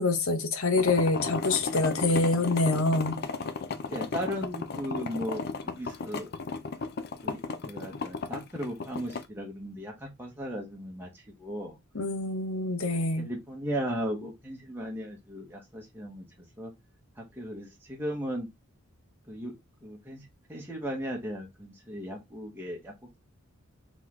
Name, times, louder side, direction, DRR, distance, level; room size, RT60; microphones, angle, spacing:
voice 1, 0.0-3.2 11.9-13.3, left 2 dB, 75° left, 0.9 m, -26 dB
sound 1, 0.8-9.3, left 4 dB, 50° left, 0.5 m, -34 dB
voice 2, 3.9-6.3 7.2-11.8 12.9-16.2 16.6-16.7 17.2-18.5 19.3-19.5 19.8-23.2, equal, 10° right, 1.0 m, -36 dB
4.0 x 3.0 x 3.6 m
head